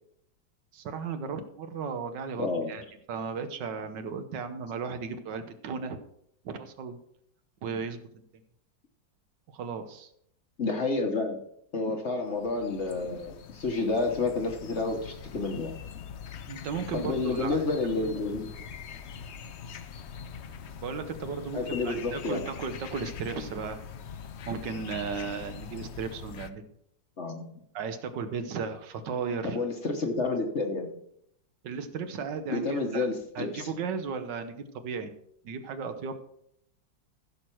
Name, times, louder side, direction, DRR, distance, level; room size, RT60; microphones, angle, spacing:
voice 1, 0.7-6.0 6.4-7.0 7.6-8.0 9.5-10.1 16.5-17.6 18.0-18.1 20.8-23.8 24.4-26.7 27.7-29.6 31.6-33.1 33.3-35.1 35.4-36.2, right 5 dB, 75° right, 9 dB, 1.6 m, -35 dB
voice 2, 2.4-2.7 10.6-11.4 11.7-15.8 16.9-18.5 21.5-22.4 27.2-27.5 29.4-30.9 32.5-33.7, left 3 dB, 45° left, 4 dB, 1.3 m, -30 dB
sound 1, 12.3-26.5, left 7 dB, 70° left, 0.6 m, -43 dB
15.5 x 6.3 x 4.5 m, 0.73 s
omnidirectional pair, 2.0 m